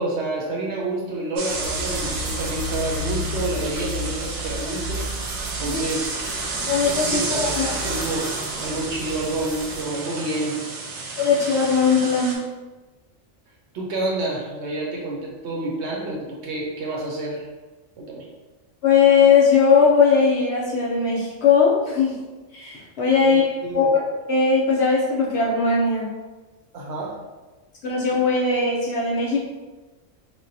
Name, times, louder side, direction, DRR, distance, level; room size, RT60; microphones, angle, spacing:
voice 1, 0.0-5.0 5.6-6.1 7.0-8.2 8.6-10.6 13.7-17.5 18.0-18.3 23.6-23.9 26.7-27.1, right 2 dB, 65° right, -2 dB, 0.8 m, -28 dB
sound 1, 1.4-12.4, right 3 dB, 90° right, 1.0 m, -30 dB
sound 2, 1.5-9.8, left 1 dB, 35° right, 0.8 m, -34 dB
voice 2, 6.7-7.7 11.2-12.4 18.8-22.1 22.5-24.0 24.3-26.1 27.8-29.5, left 5 dB, 60° left, -4 dB, 0.8 m, -19 dB
3.4 x 2.2 x 2.6 m, 1.2 s
omnidirectional pair, 1.4 m